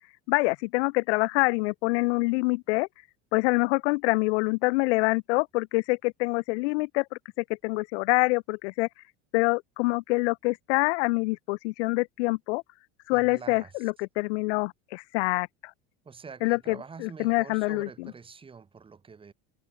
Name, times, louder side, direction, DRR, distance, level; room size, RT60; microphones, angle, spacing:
voice 1, 0.3-2.9 3.3-8.9 9.3-12.6 13.1-15.5 16.4-18.1, left 26 dB, 80° left, 0.7 m, -26 dB
voice 2, 13.1-13.9 16.0-19.3, right 5 dB, 15° right, 2.8 m, -46 dB
cardioid pair, 150°, 33 cm